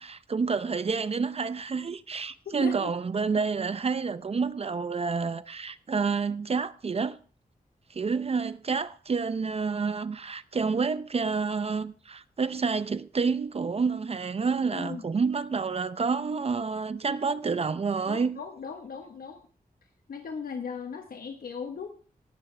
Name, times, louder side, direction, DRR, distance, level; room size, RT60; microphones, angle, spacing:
voice 1, 0.0-7.2 7.9-18.4, right 5 dB, 40° right, 0.6 m, -29 dB
voice 2, 2.6-2.9 14.7-15.0 18.1-19.4 20.1-21.9, left 5 dB, 75° left, 1.2 m, -38 dB
18.0 x 11.5 x 3.3 m
wide cardioid pair, 140°, 15 cm